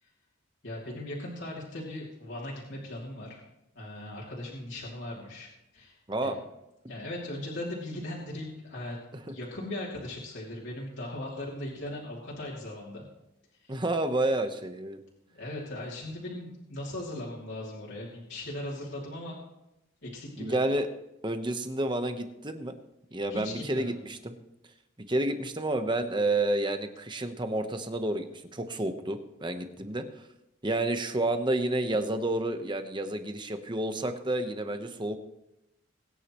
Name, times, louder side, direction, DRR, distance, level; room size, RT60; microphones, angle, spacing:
voice 1, 0.6-3.4 3.7-5.5 5.7-6.3 6.9-9.0 9.3-13.0 13.5-13.8 15.3-19.4 20.0-20.6 23.3-24.0 29.9-30.0, left 1 dB, 60° left, -5 dB, 2.8 m, -38 dB
voice 2, 13.7-15.0 20.4-20.9 21.2-22.7 23.1-24.3 25.1-30.0 30.6-35.2, right 1 dB, 20° right, 7 dB, 1.0 m, -30 dB
22.0 x 10.0 x 3.1 m, 0.90 s
head